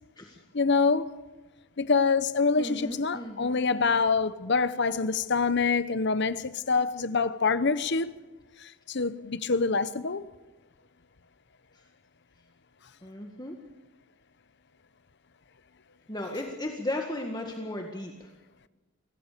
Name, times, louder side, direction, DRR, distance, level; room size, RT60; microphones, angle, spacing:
voice 1, 0.5-1.2 1.8-8.1 8.6-10.2, left 4 dB, 55° left, 0.9 m, -26 dB
voice 2, 2.6-3.6 11.7-11.8 13.0-13.6 16.1-18.3, left 1 dB, 20° left, 1.8 m, -35 dB
24.5 x 17.5 x 6.8 m
head